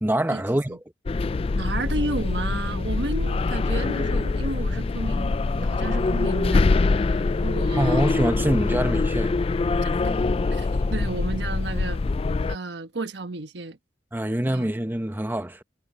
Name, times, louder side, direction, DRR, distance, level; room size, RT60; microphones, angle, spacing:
voice 1, 0.0-0.8 7.8-9.4 14.1-15.6, right 1 dB, 10° right, 1.0 m, -25 dB
sound 1, 1.1-12.6, left 3 dB, 35° left, 0.3 m, -24 dB
voice 2, 1.5-8.0 9.8-10.2 10.5-12.0 12.5-13.8 14.4-14.7, right 2 dB, 75° right, 1.2 m, -33 dB
head